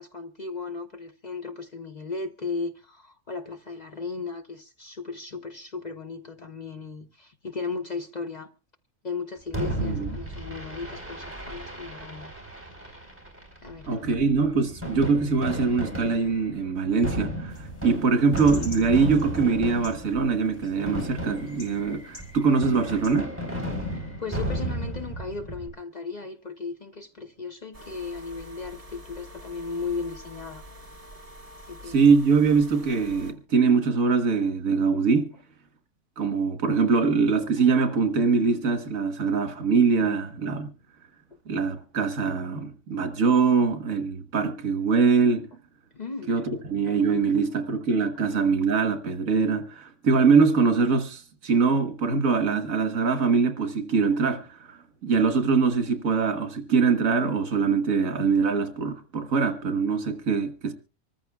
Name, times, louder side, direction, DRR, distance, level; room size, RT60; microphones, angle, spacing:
voice 1, 0.0-8.5 9.0-12.4 12.7-13.0 13.6-14.0 19.2-19.3 23.9-30.6 31.7-32.0 45.9-46.4 47.4-47.6, left 4 dB, 40° left, 0.8 m, -36 dB
Fireworks, 9.5-25.7, right 1 dB, 10° right, 3.5 m, -34 dB
voice 2, 13.9-23.3 31.9-35.3 36.2-40.7 41.5-45.5 46.3-46.4 46.7-60.7, right 5 dB, 80° right, 1.8 m, -23 dB
sound 1, 17.5-23.1, left 2 dB, 90° left, 4.4 m, -49 dB
sound 2, 27.7-33.3, equal, 25° right, 1.6 m, -46 dB
25.5 x 14.0 x 2.3 m
omnidirectional pair, 1.4 m